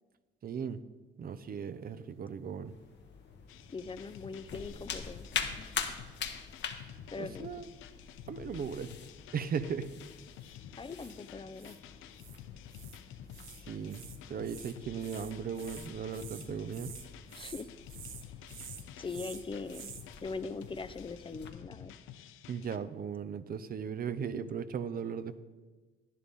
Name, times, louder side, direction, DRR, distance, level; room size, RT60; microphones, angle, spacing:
voice 1, 0.4-0.8 1.2-2.7 6.7-6.9 7.2-7.6 8.3-8.9 9.3-9.9 13.7-14.0 14.3-16.9 22.5-25.4, right 7 dB, 50° right, 12 dB, 0.6 m, -37 dB
sound 1, 1.7-2.4 8.5-8.9 10.4-10.5 10.9-11.1 11.6-11.8 12.2-12.4 12.7-13.0 13.3-13.6 13.9-20.1, right 9 dB, 80° right, 0.9 m, -50 dB
sound 2, 2.6-21.5, left 7 dB, 65° left, 1.1 m, -45 dB
sound 3, 3.5-22.8, left 10 dB, 90° left, 0.6 m, -51 dB
voice 2, 3.7-5.3 5.6-5.8 7.1-7.5 10.8-11.8 17.4-17.7 19.0-19.9 20.2-21.9, left 4 dB, 25° left, 12 dB, 0.5 m, -41 dB
11.0 x 10.5 x 3.6 m, 1.3 s
cardioid pair, 90°, 20 cm